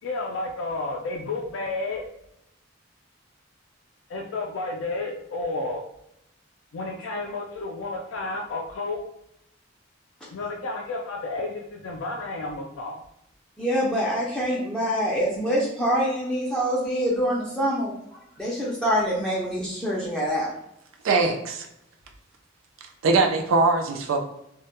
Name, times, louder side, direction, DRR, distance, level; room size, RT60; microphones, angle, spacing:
voice 1, 0.0-2.0 4.1-5.8 6.7-9.0 10.3-13.0, left 2 dB, 75° left, 0.3 m, -31 dB
voice 2, 13.6-20.5, equal, 5° left, 0.4 m, -25 dB
voice 3, 21.0-21.7 23.0-24.2, right 3 dB, 90° right, 0.4 m, -21 dB
2.1 x 2.1 x 2.8 m
head